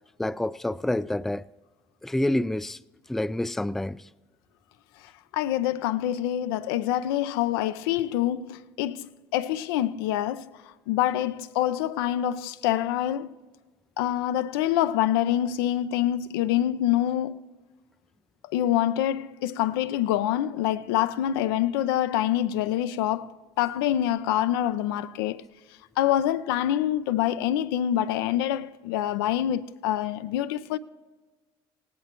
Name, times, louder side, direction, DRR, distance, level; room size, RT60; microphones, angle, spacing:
voice 1, 0.2-1.4 2.0-2.8 3.1-4.1, left 1 dB, 5° left, 0.3 m, -28 dB
voice 2, 5.3-10.5 10.9-13.3 14.0-17.4 18.5-25.4 26.0-30.8, left 12 dB, 90° left, 0.5 m, -26 dB
18.0 x 17.0 x 3.0 m
supercardioid pair, 90°, 12 cm